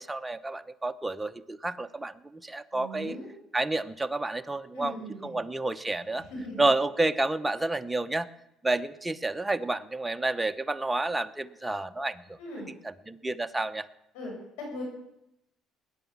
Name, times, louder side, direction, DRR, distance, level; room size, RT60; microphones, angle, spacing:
voice 1, 0.0-3.2 3.5-6.3 6.6-8.3 8.6-12.4 12.7-13.9, right 2 dB, 10° right, 10 dB, 0.7 m, -30 dB
voice 2, 2.7-3.3 4.7-5.3 6.3-6.6 12.4-12.7 14.1-14.3 14.6-14.8, left 1 dB, 90° left, 1 dB, 7.2 m, -39 dB
19.0 x 10.5 x 7.3 m, 0.85 s
cardioid pair, 110°, 0 cm